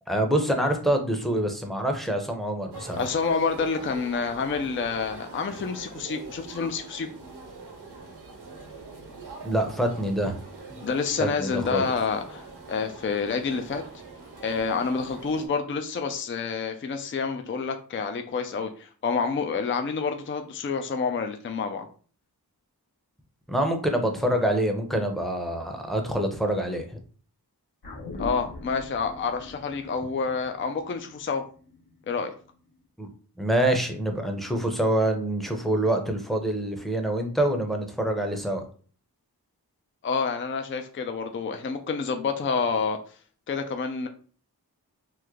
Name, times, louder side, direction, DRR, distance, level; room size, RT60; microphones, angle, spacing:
voice 1, 0.1-3.1 9.4-10.4 11.2-11.9 23.5-27.0 33.0-33.1 33.4-38.6, right 1 dB, ahead, 3 dB, 0.7 m, -26 dB
sound 1, 2.7-15.5, right 3 dB, 80° right, 1.0 m, -43 dB
voice 2, 3.0-7.1 10.8-13.8 14.4-21.9 28.2-31.4 32.1-32.3 40.0-43.0 43.5-44.1, left 5 dB, 35° left, 6 dB, 0.4 m, -28 dB
sound 2, 27.8-32.4 32.8-32.9, left 2 dB, 75° left, 1.2 m, -42 dB
3.1 x 2.1 x 3.6 m, 0.42 s
cardioid pair, 45°, 39 cm